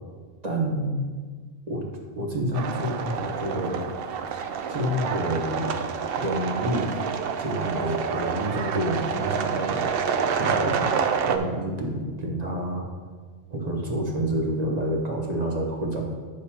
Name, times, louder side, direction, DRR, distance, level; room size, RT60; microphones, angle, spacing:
voice 1, 0.4-1.0 1.7-3.9 4.7-5.7 6.2-6.9 7.4-10.9 11.3-12.9 13.5-16.1, right 1 dB, 35° right, 0 dB, 1.0 m, -28 dB
sound 1, 2.5-11.4, right 6 dB, 60° right, 0.7 m, -28 dB
10.0 x 6.4 x 2.9 m, 1.5 s
omnidirectional pair, 1.3 m